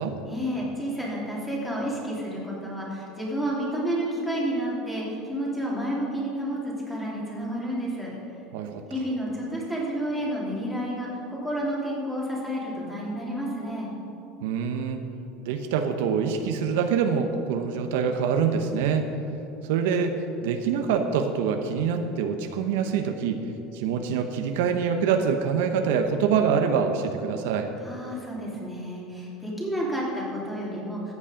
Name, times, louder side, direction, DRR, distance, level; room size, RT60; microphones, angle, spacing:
voice 1, 0.3-8.1 8.9-13.9 27.8-31.1, equal, 5° left, -5 dB, 2.9 m, -30 dB
voice 2, 8.5-8.8 14.4-15.0 15.4-19.1 19.7-23.4 23.7-27.7, right 6 dB, 80° right, 6 dB, 0.9 m, -25 dB
14.0 x 8.5 x 5.1 m, 2.7 s
cardioid pair, 150°, 0 cm